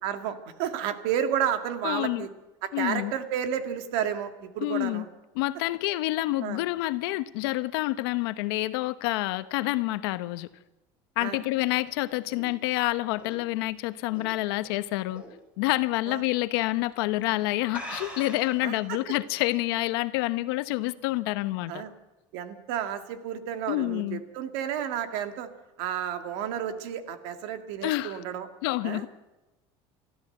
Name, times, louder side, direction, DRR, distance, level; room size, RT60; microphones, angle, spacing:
voice 1, 0.0-2.3 2.6-5.0 6.4-6.6 11.2-11.4 16.1-16.2 18.6-19.0 21.7-21.9 22.3-25.5 25.8-28.5 28.8-29.0, right 9 dB, 75° right, 2.2 m, -31 dB
voice 2, 1.8-2.3 2.7-3.1 4.6-5.0 5.3-10.5 11.2-15.2 15.6-21.7 23.7-24.2 27.8-28.2 28.6-29.1, left 18 dB, 85° left, 1.0 m, -28 dB
sound 1, 11.6-14.7 15.1-15.4 15.8-15.9 16.7-16.9 17.2-17.3 17.7-18.7, equal, 10° right, 4.5 m, -42 dB
30.0 x 13.5 x 7.9 m
cardioid pair, 155°, 12 cm